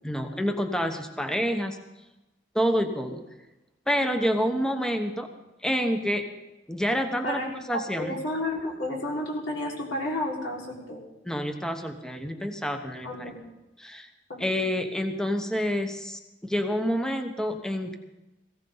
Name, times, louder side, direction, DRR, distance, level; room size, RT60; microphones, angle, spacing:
voice 1, 0.0-1.8 2.5-3.2 3.9-5.3 5.6-6.3 6.7-7.4 7.7-8.1 11.3-13.3 13.8-14.1 14.4-18.0, equal, 5° left, 5 dB, 1.0 m, -28 dB
voice 2, 7.9-11.0 13.0-13.4, left 1 dB, 65° left, -2 dB, 4.8 m, -31 dB
18.5 x 17.0 x 4.0 m, 1.0 s
head